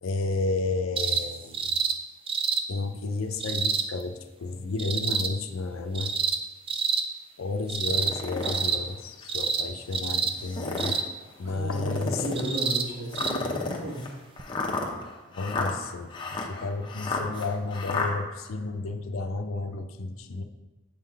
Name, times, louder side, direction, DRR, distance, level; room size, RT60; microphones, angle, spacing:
voice 1, 0.0-1.7 2.7-6.1 7.4-11.0 11.4-12.2 15.3-16.1 16.5-20.4, left 3 dB, 85° left, 8 dB, 0.5 m, -32 dB
sound 1, 1.0-1.2 1.5-1.9 2.3-2.6 3.4-3.9 4.8-5.3 5.9-6.4 6.7-7.0 7.7-8.2 8.4-8.8 9.3-9.6 9.9-10.3 10.8-11.1 12.4-12.8 13.2-13.3 14.4-14.5, right 5 dB, 25° right, 0.4 m, -27 dB
sound 2, 7.9-8.6 9.2-9.3 10.3-11.0 11.7-12.5 13.1-18.1, left 3 dB, 25° left, 0.6 m, -32 dB
voice 2, 11.4-14.0, right 1 dB, 60° right, -4 dB, 1.7 m, -34 dB
7.3 x 3.8 x 4.6 m, 1.2 s
head